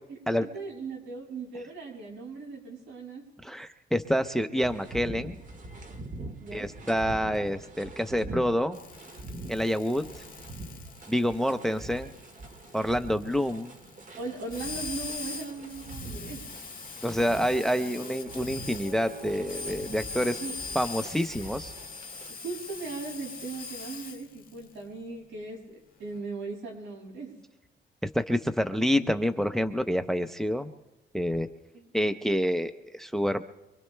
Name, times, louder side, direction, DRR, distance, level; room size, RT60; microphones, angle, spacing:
voice 1, 0.1-3.3 4.5-4.6 6.4-6.7 14.2-16.5 20.4-20.6 22.4-27.4 31.7-31.9, right 3 dB, 80° right, 0 dB, 6.7 m, -38 dB
voice 2, 3.4-5.4 6.5-8.8 9.5-10.2 11.1-12.1 12.7-13.7 17.0-20.4 20.7-21.7 28.1-30.7 31.1-31.5 31.9-33.4, equal, ahead, 9 dB, 0.7 m, -27 dB
sound 1, 4.6-22.3, right 2 dB, 40° right, 1.6 m, -43 dB
sound 2, 8.7-24.6 26.1-26.2, left 4 dB, 45° left, 1.9 m, -42 dB
24.5 x 24.0 x 2.2 m, 1.0 s
cardioid pair, 90°, 20 cm